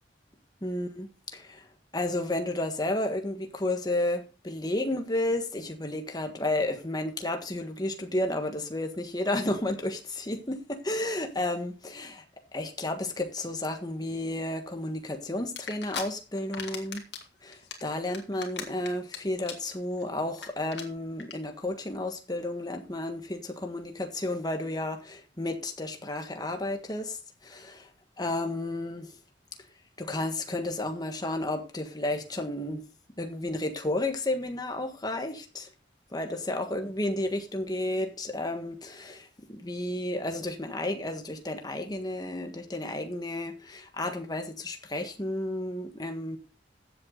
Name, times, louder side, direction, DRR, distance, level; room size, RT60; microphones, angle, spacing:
voice 1, 0.6-1.7 1.9-12.2 12.5-17.1 17.4-27.9 28.2-29.1 30.0-32.8 33.2-35.7 36.1-46.4, left 1 dB, 20° left, 1.5 m, -32 dB
sound 1, 15.6-16.0 16.4-17.2 17.5-19.2 19.4-19.7 20.0-20.1 20.3-20.5 20.7-20.8 21.2-21.3, left 7 dB, 70° left, 2.3 m, -37 dB
14.5 x 8.0 x 3.9 m
head